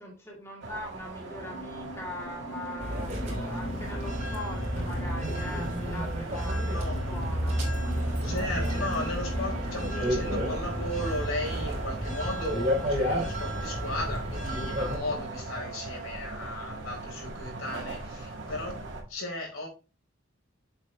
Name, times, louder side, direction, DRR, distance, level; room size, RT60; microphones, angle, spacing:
voice 1, 0.0-7.6, left 1 dB, 10° left, 2.3 m, -41 dB
sound 1, 0.6-19.0, right 3 dB, 55° right, 2.1 m, -40 dB
sound 2, 1.2-14.5, equal, 45° left, 0.9 m, -43 dB
sound 3, 2.8-15.0, equal, 35° right, 3.1 m, -31 dB
voice 2, 3.1-3.5 6.5-7.0 8.2-18.8 19.1-19.7, left 1 dB, 75° left, 4.3 m, -36 dB
7.6 x 6.7 x 3.2 m
head